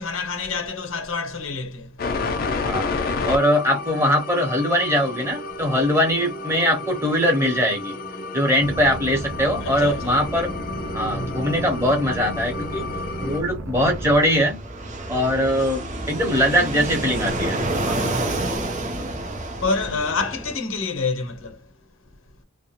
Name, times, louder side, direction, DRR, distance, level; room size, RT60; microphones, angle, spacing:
voice 1, 0.0-2.0 2.7-2.8 9.6-10.2 11.0-11.7 15.0-15.6 18.0-21.7, left 4 dB, 75° left, 0.7 m, -29 dB
sound 1, 2.0-13.4, left 3 dB, 45° left, 0.5 m, -31 dB
voice 2, 2.6-8.0 8.3-10.5 10.9-12.9 13.2-14.6 15.1-18.0, equal, 15° right, 1.0 m, -21 dB
sound 2, 8.6-14.2, right 1 dB, 90° right, 0.6 m, -34 dB
Fixed-wing aircraft airplane, 13.7-20.6, right 2 dB, 35° right, 0.6 m, -29 dB
2.4 x 2.1 x 2.9 m
head